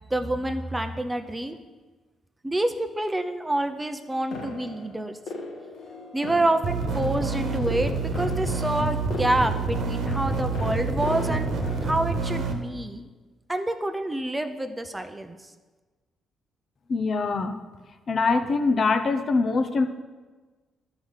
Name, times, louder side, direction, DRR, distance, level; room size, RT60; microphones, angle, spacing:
voice 1, 0.1-1.6 2.4-5.2 6.1-11.5 11.8-13.1 13.5-15.4, right 1 dB, 15° right, 7 dB, 0.6 m, -27 dB
sound 1, 4.3-12.0, left 3 dB, 75° left, 1.3 m, -39 dB
sound 2, 6.6-12.5, right 3 dB, 70° right, 1.2 m, -27 dB
voice 2, 16.9-17.6 18.1-19.9, left 4 dB, 45° left, 8 dB, 0.7 m, -23 dB
11.0 x 4.9 x 5.6 m, 1.3 s
cardioid pair, 90°, 0 cm